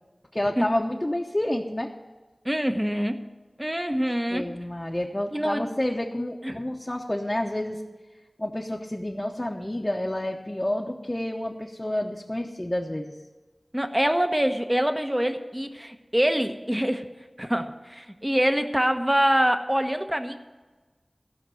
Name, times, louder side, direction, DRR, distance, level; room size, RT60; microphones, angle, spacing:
voice 1, 0.3-1.9 4.3-7.8 8.4-13.1, left 1 dB, 25° left, 0 dB, 0.9 m, -29 dB
voice 2, 2.4-3.3 3.6-4.5 5.3-5.7 6.4-6.6 13.7-20.4, equal, 15° right, 7 dB, 1.0 m, -25 dB
15.5 x 6.0 x 7.7 m, 1.3 s
wide cardioid pair, 55°, 0 cm